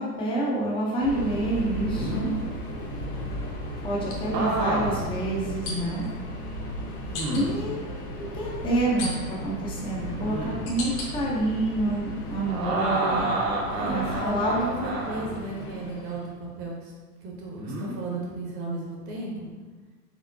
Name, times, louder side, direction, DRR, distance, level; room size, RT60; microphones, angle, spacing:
voice 1, 0.0-2.3 3.8-6.1 7.3-7.8 8.3-13.3 13.9-14.5, right 2 dB, 10° left, -4 dB, 0.5 m, -28 dB
Subway metro underground, 1.0-16.3, equal, 60° left, 1.2 m, -36 dB
sound 1, 1.6-2.3 4.3-5.1 5.7-5.8 7.1-7.7 10.0-10.7 12.5-15.4 17.6-17.9, right 2 dB, 75° right, 1.2 m, -29 dB
sound 2, 4.1-4.2 5.7-6.1 7.1-7.5 9.0-9.5 10.2-11.1 11.6-12.3 12.8-14.8, left 2 dB, 40° left, 0.9 m, -37 dB
voice 2, 13.7-16.9 17.2-19.5, right 2 dB, 30° right, -2 dB, 0.8 m, -34 dB
4.4 x 3.5 x 2.6 m, 1.3 s
hypercardioid pair, 120°, 49 cm